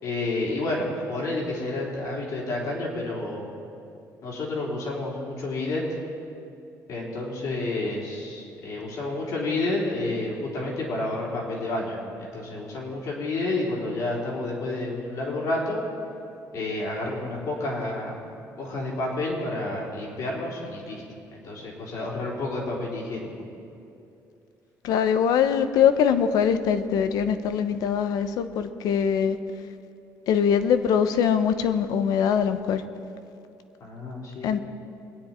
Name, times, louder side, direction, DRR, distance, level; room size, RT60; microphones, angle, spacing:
voice 1, 0.0-3.5 4.2-6.0 6.9-15.8 16.5-18.2 18.6-21.0 21.3-23.3 33.8-34.5, left 2 dB, 60° left, -3 dB, 3.7 m, -30 dB
voice 2, 24.8-29.4 30.3-32.8 34.4-34.6, left 8 dB, 75° left, 10 dB, 0.8 m, -22 dB
23.0 x 9.8 x 4.4 m, 2.6 s
cardioid pair, 145°, 7 cm